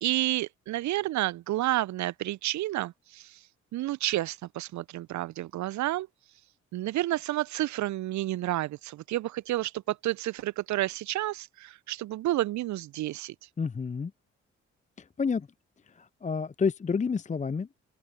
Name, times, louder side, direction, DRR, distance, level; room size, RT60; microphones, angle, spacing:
voice 1, 0.0-3.4 3.7-6.1 6.7-13.3, right 15 dB, 55° right, 1.0 m, -30 dB
voice 2, 13.6-14.1 15.2-15.5 16.0-17.8, left 5 dB, 20° left, 0.8 m, -29 dB
open air
figure-of-eight pair, 40°, 35 cm